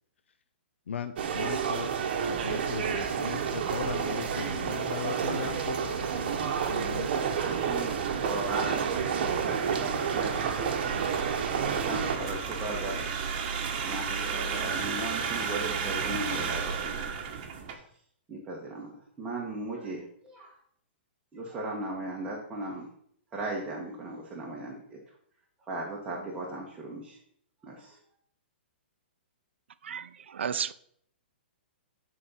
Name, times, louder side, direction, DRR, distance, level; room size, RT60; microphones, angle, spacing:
voice 1, 0.9-1.9 2.2-7.1, left 7 dB, 85° left, 0.6 m, -38 dB
sound 1, 1.2-12.2, right 7 dB, 55° right, 1.3 m, -30 dB
sound 2, 2.1-17.7, right 6 dB, 40° right, 1.5 m, -35 dB
voice 2, 7.1-8.9 9.2-11.0 11.6-13.1 13.8-17.5 17.7-17.8 18.3-20.6 21.3-22.9 23.3-25.0 25.6-27.2 27.6-28.0, right 2 dB, 15° right, 1.7 m, -37 dB
voice 3, 30.3-30.7, right 8 dB, 80° right, 0.6 m, -31 dB
11.0 x 4.1 x 5.8 m
hypercardioid pair, 150°, 6 cm